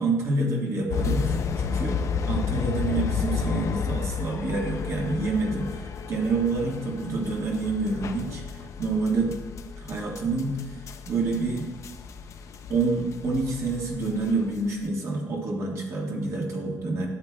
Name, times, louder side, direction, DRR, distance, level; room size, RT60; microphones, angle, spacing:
voice 1, 0.0-2.0 2.3-8.4 8.8-9.4 9.8-10.6 11.1-11.7 12.7-17.1, right 3 dB, 50° right, 0 dB, 1.4 m, -27 dB
sound 1, 0.9-14.8, left 6 dB, 50° left, 0.5 m, -32 dB
11.5 x 7.9 x 2.2 m, 1.1 s
cardioid pair, 145°, 7 cm